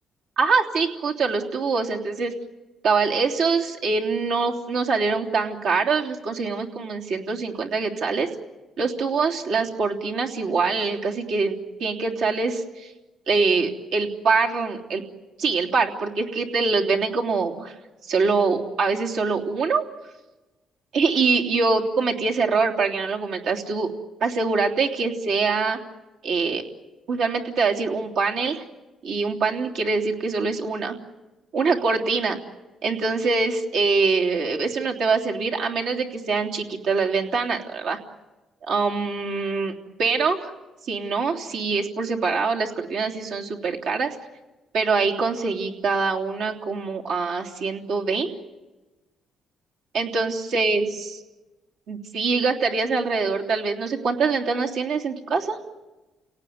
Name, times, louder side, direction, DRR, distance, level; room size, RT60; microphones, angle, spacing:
voice 1, 0.4-2.3 2.8-8.3 8.8-12.9 13.3-15.0 15.4-17.7 18.0-19.8 20.9-23.9 24.2-25.8 26.2-26.6 27.1-28.6 29.0-30.9 31.5-32.4 32.8-38.0 38.7-39.7 40.0-40.5 40.8-44.2 44.7-48.3 49.9-51.2 51.9-55.6, right 4 dB, 80° right, -1 dB, 3.3 m, -24 dB
29.5 x 18.0 x 9.5 m, 1.1 s
cardioid pair, 90°, 0 cm